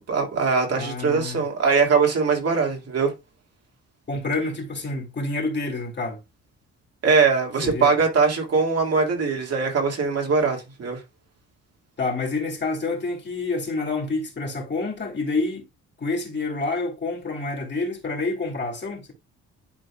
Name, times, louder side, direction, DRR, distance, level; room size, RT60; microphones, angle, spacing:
voice 1, 0.1-3.1 7.0-11.0, right 5 dB, 55° right, 2.3 m, -21 dB
voice 2, 0.8-1.4 4.1-6.2 7.6-7.9 12.0-15.6 16.0-19.1, left 3 dB, 35° left, 2.7 m, -28 dB
11.0 x 4.2 x 2.4 m
cardioid pair, 90°, 30 cm